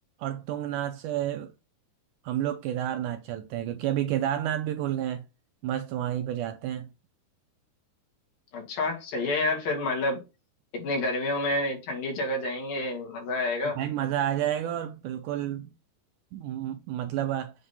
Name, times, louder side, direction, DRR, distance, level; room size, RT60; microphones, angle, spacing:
voice 1, 0.2-1.5 2.2-5.2 5.6-6.9 13.8-15.7 16.3-17.5, right 11 dB, 80° right, 1.9 m, -30 dB
voice 2, 8.5-10.2 10.7-13.8, left 2 dB, 75° left, 4.1 m, -29 dB
7.7 x 3.6 x 4.2 m
omnidirectional pair, 4.1 m